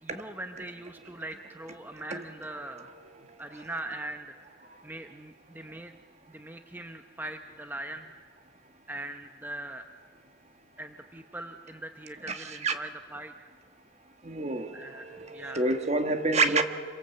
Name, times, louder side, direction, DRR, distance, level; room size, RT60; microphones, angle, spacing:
voice 1, 0.0-2.9 3.4-4.6 4.8-5.9 6.3-8.1 8.9-9.9 10.8-13.5 14.7-15.7, right 1 dB, 10° right, 6 dB, 0.8 m, -41 dB
voice 2, 14.2-16.6, right 3 dB, 35° right, 7 dB, 1.4 m, -27 dB
27.0 x 23.0 x 7.8 m, 2.2 s
head